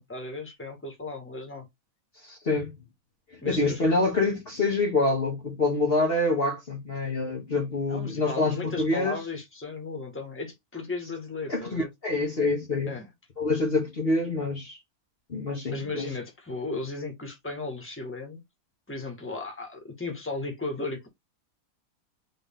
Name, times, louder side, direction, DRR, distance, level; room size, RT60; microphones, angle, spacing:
voice 1, 0.0-1.6 3.4-3.8 7.9-11.9 12.8-13.1 15.7-18.4 18.9-21.1, left 3 dB, 10° left, 1.6 m, -35 dB
voice 2, 2.2-2.7 3.4-9.2 11.5-12.9 13.4-14.8 15.3-16.1, left 2 dB, 40° left, 1.5 m, -26 dB
4.2 x 3.4 x 3.6 m
omnidirectional pair, 1.6 m